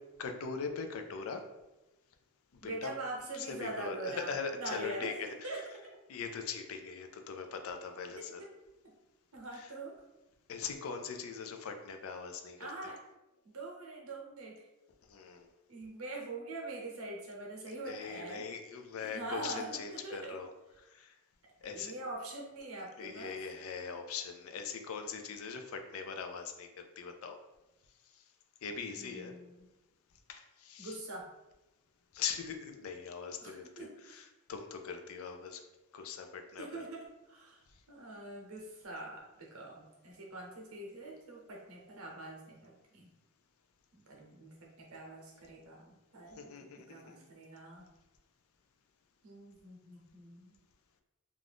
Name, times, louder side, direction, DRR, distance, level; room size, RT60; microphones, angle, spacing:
voice 1, 0.2-1.4 2.5-3.0 3.3-5.6 6.1-8.4 9.5-9.7 10.5-12.9 15.1-15.5 17.7-20.5 20.8-21.1 21.6-21.9 23.0-27.4 28.1-28.2 28.6-29.3 30.3-31.0 32.1-35.6 35.9-36.8 46.4-47.2, left 5 dB, 75° left, 6 dB, 0.4 m, -41 dB
voice 2, 2.6-5.2 5.4-5.6 9.3-9.9 12.6-13.0 13.4-14.6 15.7-18.4 19.0-20.3 21.6-23.3 29.0-29.7 30.8-31.3 33.4-34.2 36.6-37.6 37.9-43.1 43.9-47.9 49.2-50.6, right 2 dB, 85° right, -1 dB, 0.8 m, -44 dB
2.5 x 2.3 x 3.3 m, 1.0 s
head